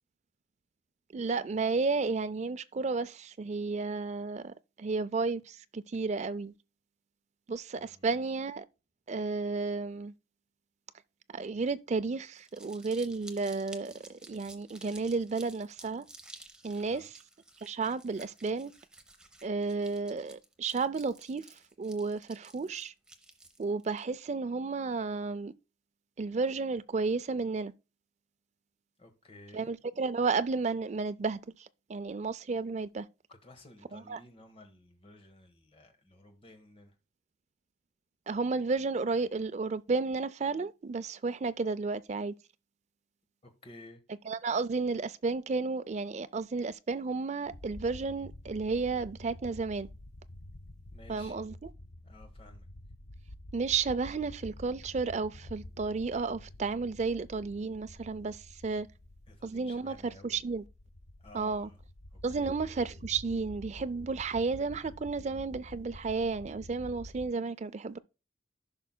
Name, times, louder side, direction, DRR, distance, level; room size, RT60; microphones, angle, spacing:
voice 1, 1.1-6.5 7.5-8.6 9.1-10.1 11.3-16.0 16.6-17.2 17.6-18.7 19.4-21.5 21.8-22.9 23.6-25.5 26.2-27.7 29.5-33.1 33.9-34.2 38.3-42.3 44.3-49.9 51.1-51.5 53.5-58.9 59.4-59.9 60.2-60.6 61.3-61.7 62.2-68.0, right 4 dB, 35° right, 0.4 m, -32 dB
voice 2, 7.7-8.2 16.8-17.1 29.0-29.7 33.3-36.9 43.4-44.0 50.9-51.5 52.0-52.7 59.3-60.5 61.2-61.8 62.1-62.5, left 1 dB, 30° left, 1.3 m, -54 dB
Crumpling crinkling, 12.3-24.0, right 2 dB, 5° right, 0.8 m, -53 dB
sound 1, 47.4-67.3, left 1 dB, 70° left, 0.7 m, -49 dB
15.0 x 5.5 x 2.2 m
head